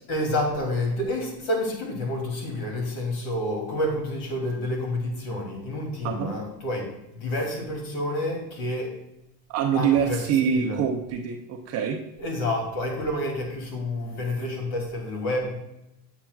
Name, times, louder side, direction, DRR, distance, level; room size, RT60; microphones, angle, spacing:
voice 1, 0.1-8.9 9.7-10.8 12.2-15.5, left 1 dB, 60° left, 0 dB, 2.8 m, -29 dB
voice 2, 9.5-12.0, right 8 dB, 35° right, 3 dB, 0.6 m, -25 dB
8.6 x 7.4 x 2.3 m, 0.87 s
cardioid pair, 155°, 47 cm